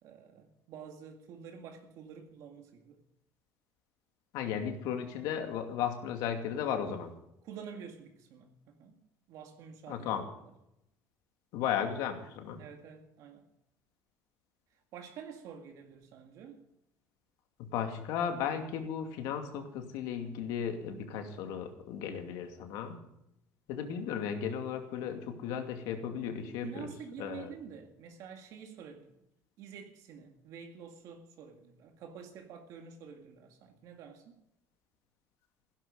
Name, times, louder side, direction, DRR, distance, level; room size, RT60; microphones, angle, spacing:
voice 1, 0.0-3.0 7.4-9.0 9.3-10.1 12.6-13.5 14.7-16.6 26.6-29.2 29.6-34.4, right 7 dB, 60° right, 4 dB, 2.0 m, -48 dB
voice 2, 4.3-7.1 9.9-10.2 11.5-12.6 17.6-23.0 23.7-26.9 27.2-27.5, left 8 dB, 85° left, 5 dB, 2.6 m, -35 dB
16.0 x 12.0 x 5.2 m, 0.82 s
cardioid pair, 160°, 6 cm